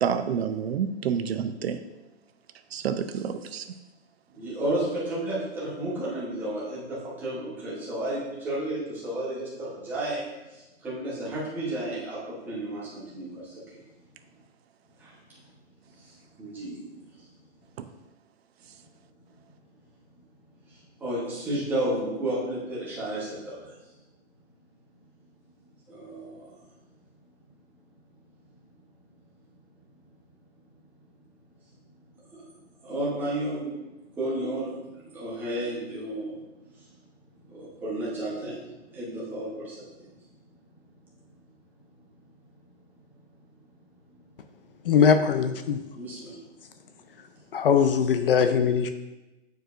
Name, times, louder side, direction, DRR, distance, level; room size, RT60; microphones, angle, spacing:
voice 1, 0.0-1.8 2.7-3.7 17.8-17.9, right 7 dB, 65° right, 10 dB, 0.5 m, -28 dB
voice 2, 4.4-10.2 10.5-13.8 15.0-15.1 15.9-16.8 17.1-17.3 20.7-23.8 25.9-26.5 32.3-32.4 32.8-33.8 34.1-36.4 37.4-38.6 38.9-39.8 46.0-46.4, right 1 dB, 5° right, -8 dB, 1.0 m, -32 dB
voice 3, 44.9-45.8 47.5-48.9, left 7 dB, 55° left, 9 dB, 0.4 m, -21 dB
8.8 x 4.6 x 2.5 m, 1.0 s
hypercardioid pair, 175°, 35 cm